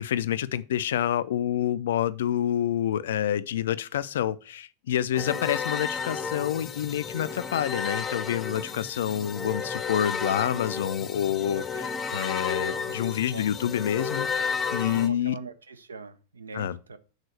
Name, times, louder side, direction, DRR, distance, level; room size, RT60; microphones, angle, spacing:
voice 1, 0.0-15.4 16.5-16.8, left 10 dB, 60° left, 0.4 m, -28 dB
voice 2, 5.1-5.5 13.3-13.5 14.9-17.0, right 4 dB, 75° right, 0.7 m, -42 dB
sound 1, 5.2-15.1, left 5 dB, 20° left, 0.7 m, -32 dB
6.5 x 4.0 x 6.3 m
figure-of-eight pair, 90°, 0 cm